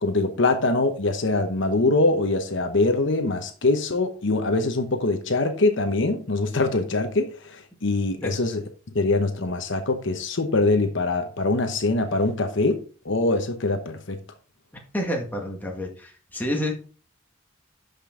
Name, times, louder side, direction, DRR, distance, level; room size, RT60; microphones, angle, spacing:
voice 1, 0.0-8.6 8.9-14.2, left 2 dB, 60° left, 1.0 m, -23 dB
voice 2, 14.9-16.7, left 1 dB, 10° left, 1.7 m, -29 dB
11.5 x 5.2 x 3.8 m
head